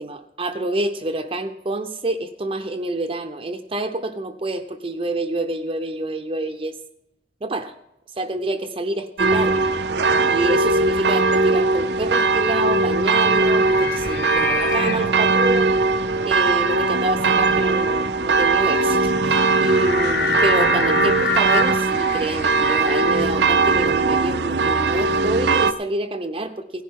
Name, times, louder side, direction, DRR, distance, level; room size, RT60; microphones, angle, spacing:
voice 1, 0.0-6.7 7.4-7.7 8.2-9.7 10.0-26.8, right 2 dB, 30° right, 6 dB, 0.6 m, -27 dB
sound 1, 9.2-25.7, right 3 dB, 70° right, 0.6 m, -20 dB
sound 2, 12.4-23.8, left 5 dB, 65° left, 0.9 m, -28 dB
17.0 x 10.5 x 3.7 m, 0.84 s
head